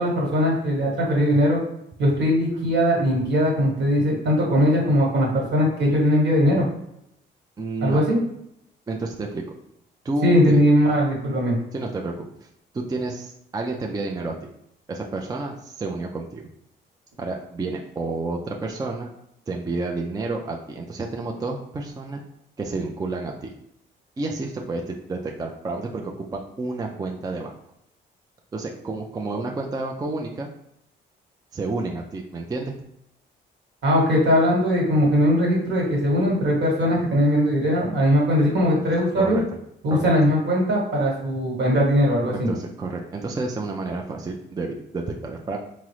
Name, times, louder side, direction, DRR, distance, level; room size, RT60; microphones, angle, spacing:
voice 1, 0.0-1.6 2.0-6.7 7.8-8.2 10.2-11.6 33.8-39.4 39.8-42.5, equal, 65° right, -2 dB, 1.3 m, -20 dB
voice 2, 7.6-8.0 8.9-9.4 10.0-10.6 11.7-12.2 12.7-14.5 14.9-16.5 17.2-19.1 19.5-22.2 22.6-23.5 24.2-27.5 28.5-30.5 31.5-32.7 39.2-39.5 39.9-40.1 42.5-45.6, right 3 dB, 20° right, 1 dB, 0.4 m, -30 dB
3.6 x 2.0 x 3.0 m, 0.77 s
cardioid pair, 90°, 20 cm